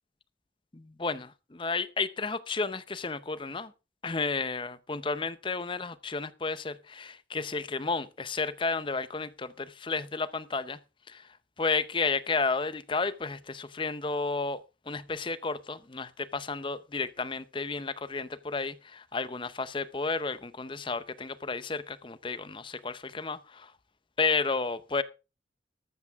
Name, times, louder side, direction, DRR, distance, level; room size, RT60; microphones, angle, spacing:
voice 1, 0.7-3.7 4.0-10.8 11.1-23.7 24.2-25.0, left 4 dB, 25° left, 0.6 m, -32 dB
13.5 x 12.5 x 3.5 m
head